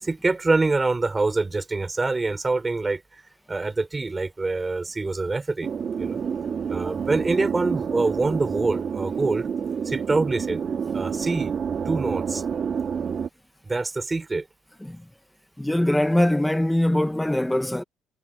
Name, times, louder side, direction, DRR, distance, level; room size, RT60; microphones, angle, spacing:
voice 1, 0.0-3.2 3.5-5.7 6.0-6.2 6.7-9.5 9.8-10.6 10.9-11.5 11.8-12.4 13.6-14.5, right 3 dB, 20° right, 4.4 m, -25 dB
sound 1, 5.6-13.3, right 7 dB, 45° right, 2.8 m, -28 dB
voice 2, 15.6-17.8, left 1 dB, 5° left, 1.5 m, -22 dB
cardioid pair, 100°, 0 cm